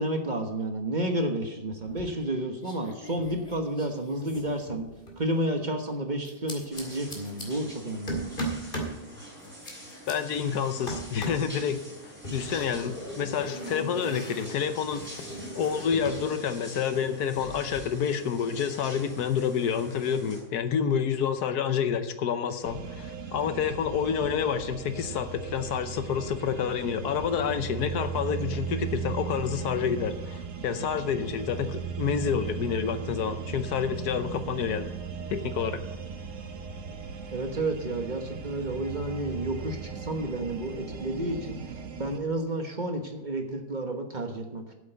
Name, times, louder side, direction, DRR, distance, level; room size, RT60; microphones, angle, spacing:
voice 1, 0.0-4.9 5.2-8.4 37.3-41.6 42.0-44.7, right 1 dB, 30° right, 4 dB, 1.2 m, -31 dB
sound 1, 1.8-2.4 2.6-5.2 6.2-7.5 8.1-9.0 9.4-10.1 10.9-11.5 12.2-16.2 16.5-17.8, right 1 dB, 35° left, 2.4 m, -38 dB
sound 2, 6.7-20.4, equal, 5° right, 4.5 m, -45 dB
voice 2, 10.1-11.8 12.3-15.0 15.6-34.9 35.3-35.8, left 7 dB, 90° left, 10 dB, 1.4 m, -28 dB
sound 3, 22.6-42.2, right 6 dB, 55° right, 1.3 m, -37 dB
8.6 x 7.9 x 8.1 m, 0.97 s
omnidirectional pair, 1.6 m